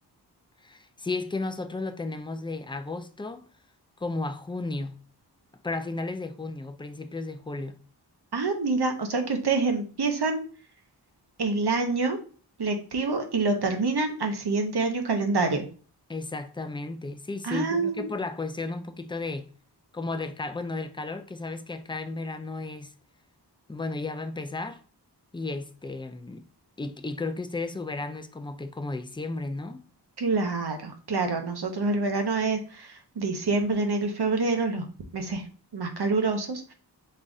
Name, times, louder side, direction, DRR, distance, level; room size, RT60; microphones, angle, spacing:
voice 1, 0.6-3.5 4.0-5.0 5.6-7.8 16.1-19.5 19.9-22.9 23.7-24.8 25.3-26.4 26.8-29.9, left 3 dB, 10° left, 0.4 m, -34 dB
voice 2, 8.3-10.4 11.4-12.2 12.6-15.7 17.4-18.1 30.2-34.9 35.1-35.5 35.7-36.7, right 3 dB, 65° right, 0.9 m, -26 dB
5.4 x 3.5 x 2.6 m
wide cardioid pair, 70°, 41 cm